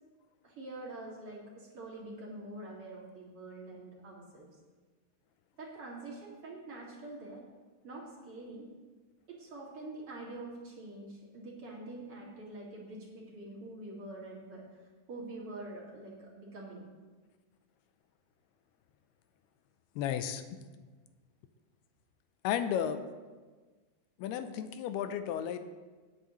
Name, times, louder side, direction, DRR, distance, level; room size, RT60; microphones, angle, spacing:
voice 1, 0.4-4.5 5.6-7.4 7.8-8.7 9.3-14.6 15.1-16.9, right 2 dB, 40° right, -5 dB, 2.5 m, -45 dB
voice 2, 20.0-20.4 22.4-23.0 24.2-25.6, left 9 dB, 85° left, 10 dB, 2.5 m, -33 dB
18.5 x 9.3 x 3.1 m, 1.4 s
omnidirectional pair, 4.7 m